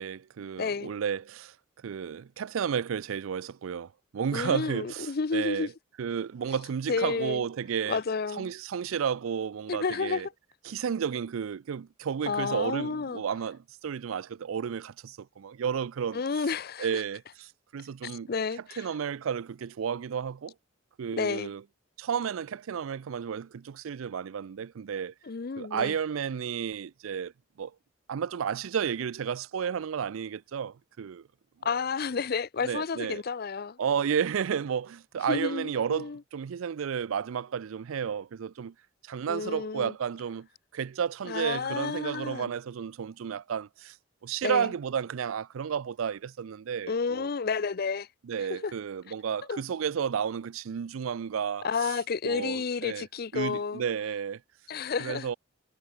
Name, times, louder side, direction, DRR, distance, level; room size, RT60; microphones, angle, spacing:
voice 1, 0.0-1.5 1.8-5.7 6.0-8.0 8.4-10.3 10.7-16.2 16.8-17.2 17.7-18.3 18.8-20.5 21.0-21.6 22.0-25.1 25.6-27.3 27.6-27.7 28.1-31.2 32.6-33.2 33.8-38.7 39.1-40.5 40.7-43.9 44.2-47.3 48.3-51.7 52.2-53.0 53.3-54.4 55.0-55.3, right 7 dB, 90° right, 0.4 m, -32 dB
voice 2, 0.6-0.9 4.3-5.7 6.9-7.4 7.9-8.5 9.7-10.2 12.3-13.2 16.1-17.0 18.0-18.9 21.2-21.5 25.2-25.9 31.6-33.8 35.3-36.2 39.3-39.9 41.2-42.5 44.4-44.7 46.9-48.1 48.5-48.7 49.5-49.6 51.6-53.8 54.7-55.3, left 5 dB, 50° left, 0.5 m, -31 dB
head